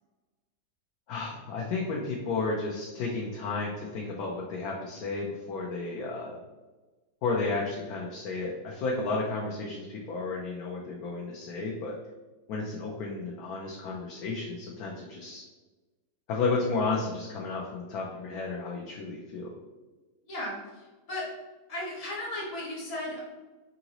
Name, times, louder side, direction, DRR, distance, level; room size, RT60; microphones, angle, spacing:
voice 1, 1.1-6.4 7.2-11.9 12.5-15.4 16.3-19.5, left 3 dB, 70° left, -2 dB, 1.0 m, -32 dB
voice 2, 20.3-21.3 21.7-23.2, left 1 dB, 50° left, -4 dB, 1.5 m, -36 dB
4.7 x 2.6 x 2.9 m, 1.2 s
omnidirectional pair, 1.8 m